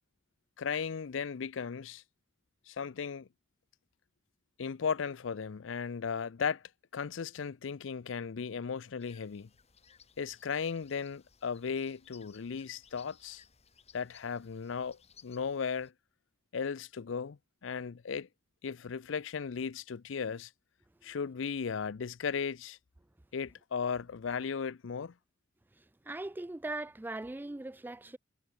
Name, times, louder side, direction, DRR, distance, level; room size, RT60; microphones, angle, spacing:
voice 1, 0.6-2.0 2.7-3.3 4.6-6.6 6.9-9.5 10.2-13.4 13.9-15.9 16.5-18.3 18.6-20.5 21.0-22.8 23.3-25.1, left 6 dB, 75° left, 0.5 m, -36 dB
sound 1, 9.0-15.9, left 7 dB, 35° left, 1.7 m, -61 dB
voice 2, 25.8-28.2, right 2 dB, 10° right, 0.3 m, -40 dB
head